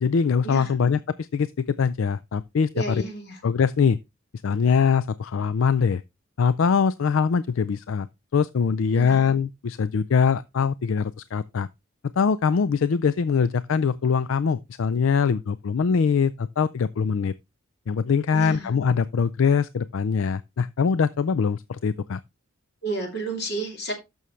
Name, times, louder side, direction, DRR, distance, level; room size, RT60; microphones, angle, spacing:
voice 1, 0.0-3.0 3.4-4.0 4.4-6.0 6.4-8.1 8.3-11.7 12.2-17.3 17.9-22.2, left 6 dB, 70° left, 0.4 m, -23 dB
voice 2, 2.7-3.4 8.9-9.3 18.3-18.7 22.8-23.9, right 2 dB, 50° left, 3.1 m, -31 dB
12.5 x 6.3 x 3.2 m
head